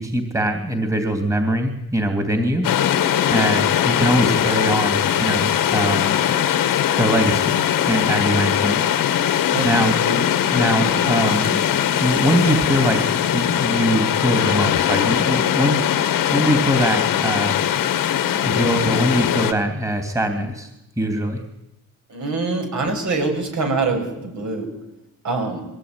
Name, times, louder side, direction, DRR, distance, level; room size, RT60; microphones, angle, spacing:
voice 1, 0.0-2.7 3.3-6.2 7.0-7.6 7.9-8.8 9.6-9.9 10.5-11.6 12.0-17.6 18.5-20.7 21.0-21.4, right 1 dB, 10° right, 5 dB, 3.0 m, -22 dB
sound 1, 2.6-19.5, left 10 dB, 85° left, 2.0 m, -20 dB
voice 2, 9.5-10.2 10.6-10.9 20.4-20.5 22.1-24.7 25.2-25.7, right 3 dB, 60° right, 3 dB, 7.8 m, -25 dB
22.5 x 18.0 x 9.8 m, 0.88 s
cardioid pair, 100°, 32 cm